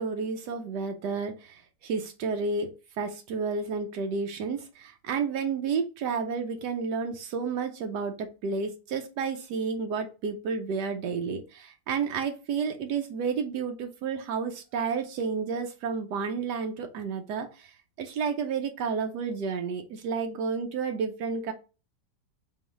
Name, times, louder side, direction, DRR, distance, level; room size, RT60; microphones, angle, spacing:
voice 1, 0.0-2.7 3.0-17.7 18.0-21.5, right 5 dB, 80° right, 5 dB, 1.2 m, -31 dB
3.9 x 3.9 x 3.0 m, 0.31 s
omnidirectional pair, 1.8 m